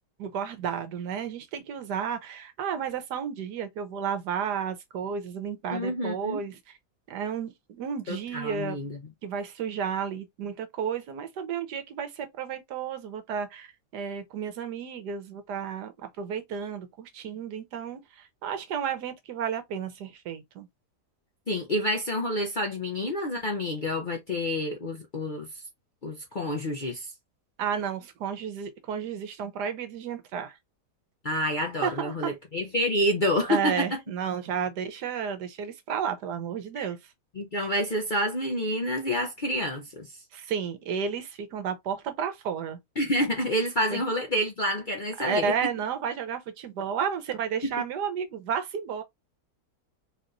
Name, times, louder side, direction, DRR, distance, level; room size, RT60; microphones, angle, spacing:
voice 1, 0.2-6.8 7.1-8.8 9.2-20.7 27.6-30.6 31.8-32.3 33.5-37.0 40.3-42.8 43.9-44.0 45.2-49.0, right 7 dB, 80° right, 1.4 m, -32 dB
voice 2, 5.7-6.4 8.1-9.0 21.5-25.6 26.0-27.1 31.2-34.0 36.8-36.9 37.4-40.2 43.0-45.5 47.6-47.7, left 1 dB, 45° left, 0.6 m, -28 dB
4.0 x 2.9 x 2.6 m
omnidirectional pair, 1.7 m